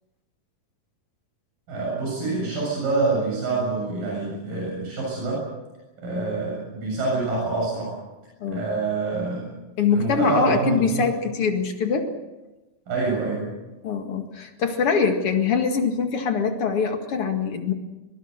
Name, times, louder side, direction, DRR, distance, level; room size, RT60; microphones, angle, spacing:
voice 1, 1.7-5.5 6.0-8.0 8.5-9.5 9.9-11.1 12.9-13.5, right 3 dB, 70° right, -4 dB, 9.0 m, -26 dB
voice 2, 9.8-12.1 13.8-17.7, left 5 dB, 45° left, 5 dB, 2.5 m, -23 dB
24.0 x 22.5 x 6.6 m, 1.1 s
omnidirectional pair, 4.1 m